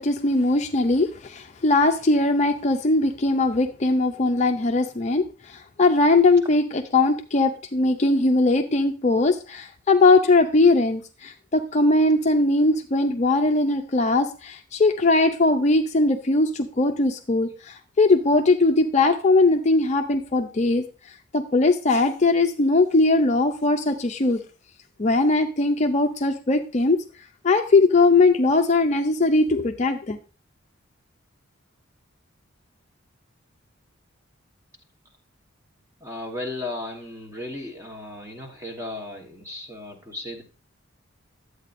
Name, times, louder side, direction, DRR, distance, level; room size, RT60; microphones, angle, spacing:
voice 1, 0.0-20.8 21.3-24.4 25.0-27.0 27.4-30.2, left 2 dB, 35° left, 5 dB, 0.5 m, -20 dB
voice 2, 36.0-40.4, left 2 dB, 15° right, 2 dB, 1.3 m, -35 dB
11.0 x 8.2 x 2.6 m, 0.34 s
head